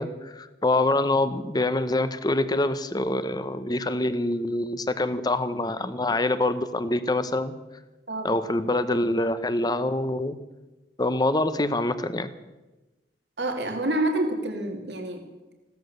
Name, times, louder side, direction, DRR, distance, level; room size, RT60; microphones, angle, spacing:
voice 1, 0.0-7.5 8.2-10.4 11.0-12.3, left 2 dB, 25° left, 12 dB, 0.8 m, -25 dB
voice 2, 13.4-15.3, right 1 dB, 75° right, 4 dB, 2.3 m, -27 dB
16.0 x 13.0 x 6.7 m, 1.1 s
head